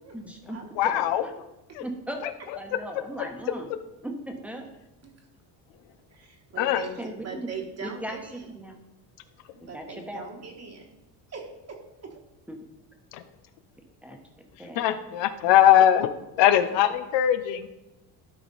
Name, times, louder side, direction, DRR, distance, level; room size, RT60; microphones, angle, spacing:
voice 1, 0.1-0.6 0.8-1.3 1.8-2.2 2.6-3.7 4.0-4.7 7.0-7.5 7.8-8.8 9.7-10.2 12.5-12.6 14.0-14.2 14.6-14.8, right 1 dB, 5° right, 3 dB, 1.0 m, -37 dB
voice 2, 0.8-1.2 1.7-1.8 6.6-6.8 13.1-13.2 14.7-16.1 16.4-17.7, left 11 dB, 90° left, 10 dB, 0.8 m, -21 dB
voice 3, 6.1-8.7 9.6-10.8 11.3-12.2 16.5-16.6, right 4 dB, 35° right, 1 dB, 1.4 m, -41 dB
12.5 x 4.9 x 4.1 m, 0.96 s
cardioid pair, 140°, 43 cm